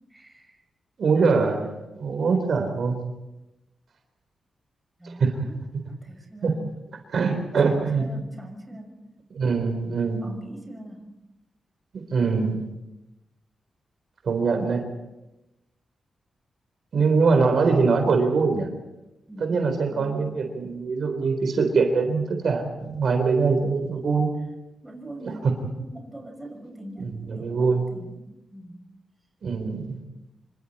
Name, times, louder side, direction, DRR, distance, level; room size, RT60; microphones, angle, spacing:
voice 1, 0.1-0.6 5.0-5.6 5.9-6.6 7.6-9.0 10.2-11.1 19.3-20.3 23.8-24.1 24.8-28.2 28.5-28.8, right 1 dB, 10° right, 2 dB, 6.2 m, -42 dB
voice 2, 1.0-1.7 2.0-3.0 5.0-5.3 6.4-6.5 7.1-8.0 9.3-10.2 11.9-12.6 14.2-14.8 16.9-18.7 19.4-24.3 25.2-25.5 27.0-27.8 29.4-30.0, right 4 dB, 70° right, 5 dB, 3.8 m, -23 dB
26.5 x 26.0 x 4.3 m, 0.97 s
cardioid pair, 85°, 0 cm